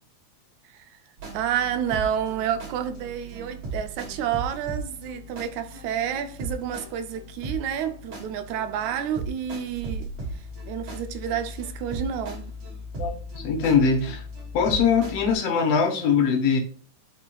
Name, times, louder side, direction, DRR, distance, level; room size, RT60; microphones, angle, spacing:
voice 1, 0.7-1.0 1.3-12.5, right 9 dB, 80° right, 1.9 m, -30 dB
sound 1, 1.2-15.3, right 1 dB, 60° right, 3.7 m, -37 dB
voice 2, 13.0-14.2 14.5-16.6, left 6 dB, 65° left, 2.0 m, -22 dB
11.5 x 4.3 x 2.3 m
omnidirectional pair, 3.4 m